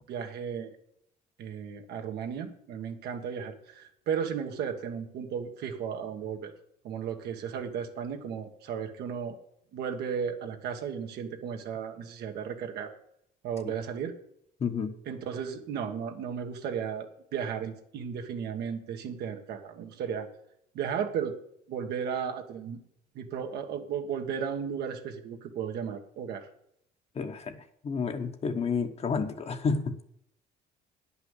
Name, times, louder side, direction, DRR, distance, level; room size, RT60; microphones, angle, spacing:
voice 1, 0.1-0.7 1.4-6.5 6.8-9.3 9.7-12.9 13.4-14.1 15.1-20.3 20.7-21.3 21.7-22.8 23.1-26.5, right 7 dB, 75° right, 4 dB, 1.5 m, -34 dB
voice 2, 14.6-15.0 27.1-30.0, left 5 dB, 40° left, 7 dB, 1.1 m, -30 dB
9.7 x 5.7 x 8.1 m, 0.71 s
cardioid pair, 110°, 17 cm